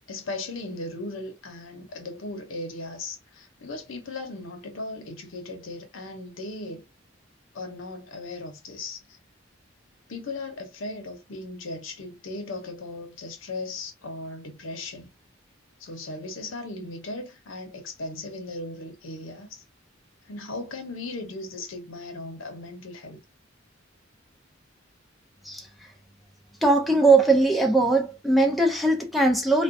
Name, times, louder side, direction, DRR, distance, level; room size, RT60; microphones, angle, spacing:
voice 1, 0.0-6.8 7.5-9.2 10.1-15.1 15.8-19.6 20.3-23.2, left 2 dB, 90° left, 0.7 m, -37 dB
voice 2, 25.4-25.9 26.6-29.6, right 2 dB, ahead, 0.4 m, -20 dB
2.4 x 2.1 x 2.5 m
head